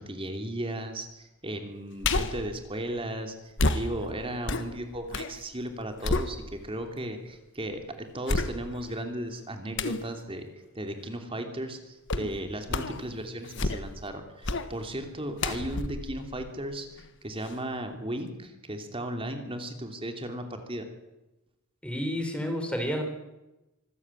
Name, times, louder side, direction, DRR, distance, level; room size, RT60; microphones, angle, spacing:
voice 1, 0.0-10.5 10.7-20.9, right 1 dB, 25° right, 6 dB, 2.8 m, -36 dB
sound 1, 2.0-2.5 3.6-5.4 5.7-6.8 7.3-7.4 8.3-8.9 9.8-10.1 12.1-12.3 12.7-13.0 13.4-14.0 14.4-14.7 15.4-17.1 17.5-17.6, left 2 dB, 60° left, 1.6 m, -30 dB
voice 2, 21.8-23.0, equal, 5° left, 4 dB, 4.0 m, -30 dB
25.5 x 14.5 x 9.0 m, 1.0 s
head